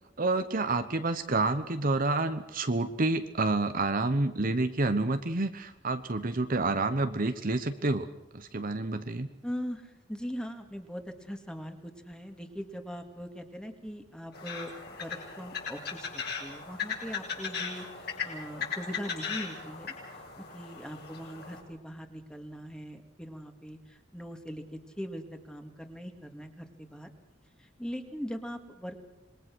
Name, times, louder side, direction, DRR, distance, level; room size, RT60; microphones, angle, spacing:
voice 1, 0.2-8.1 8.3-9.3, right 2 dB, 45° right, 9 dB, 1.0 m, -28 dB
voice 2, 9.4-14.7 15.0-27.1 27.6-29.0, equal, 5° left, 5 dB, 2.1 m, -41 dB
sound 1, 14.3-21.6, left 6 dB, 55° left, 6.6 m, -38 dB
26.5 x 21.5 x 6.3 m, 0.98 s
head